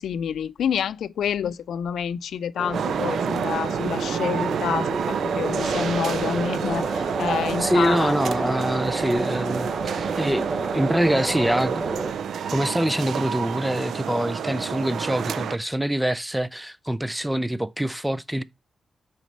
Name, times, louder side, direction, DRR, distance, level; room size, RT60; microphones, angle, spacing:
voice 1, 0.0-8.1, left 8 dB, 90° left, 0.3 m, -28 dB
sound 1, 2.6-12.1, right 3 dB, 45° right, 1.2 m, -30 dB
sound 2, 2.7-15.6, right 7 dB, 75° right, 0.4 m, -29 dB
voice 2, 7.6-10.5 10.7-11.8 12.5-18.4, equal, 5° right, 0.4 m, -24 dB
6.2 x 4.3 x 5.1 m
wide cardioid pair, 135°, 0 cm